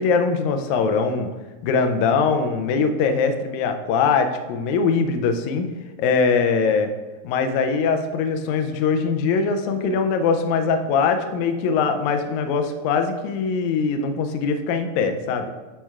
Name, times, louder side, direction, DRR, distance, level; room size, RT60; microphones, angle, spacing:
voice 1, 0.0-1.3 1.6-5.7 6.0-6.9 7.2-15.5, left 5 dB, 80° left, 6 dB, 1.7 m, -22 dB
11.5 x 4.4 x 2.4 m, 1.2 s
omnidirectional pair, 3.9 m